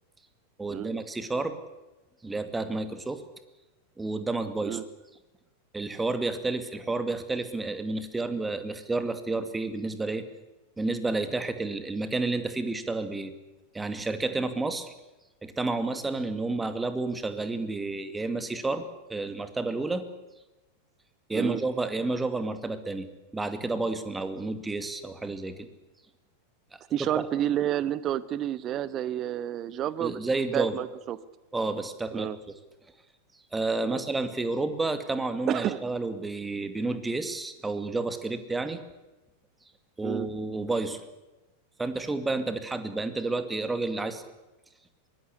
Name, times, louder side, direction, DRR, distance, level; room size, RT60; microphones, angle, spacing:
voice 1, 0.6-1.6 2.2-3.2 4.0-4.8 5.7-10.2 10.8-13.3 13.7-14.9 15.4-18.8 19.1-20.0 21.3-23.1 23.3-25.7 26.7-26.8 30.0-30.7 31.5-32.3 33.5-38.8 40.0-41.0 41.8-44.2, right 3 dB, 10° right, 10 dB, 2.4 m, -30 dB
voice 2, 26.9-30.2 30.5-31.2 32.1-32.4 33.8-34.0 35.5-35.8 40.0-40.3, right 11 dB, 30° right, 17 dB, 1.2 m, -30 dB
23.5 x 20.5 x 8.4 m, 1.1 s
figure-of-eight pair, 90°, 0 cm